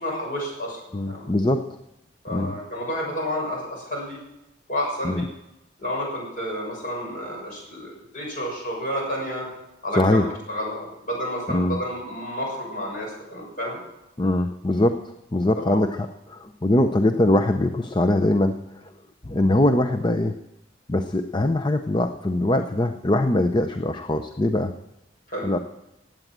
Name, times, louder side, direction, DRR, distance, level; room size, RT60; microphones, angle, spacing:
voice 1, 0.0-1.2 2.2-4.2 4.7-5.3 5.8-9.5 9.8-13.8 15.6-15.9 25.3-25.6, equal, 45° left, -1 dB, 6.5 m, -30 dB
voice 2, 0.9-1.7 2.3-2.5 5.0-5.2 9.9-10.3 11.5-11.8 14.2-18.9 19.2-20.3 20.9-24.7 25.4-25.6, left 1 dB, 25° left, 7 dB, 0.6 m, -22 dB
17.0 x 9.0 x 7.5 m, 0.92 s
head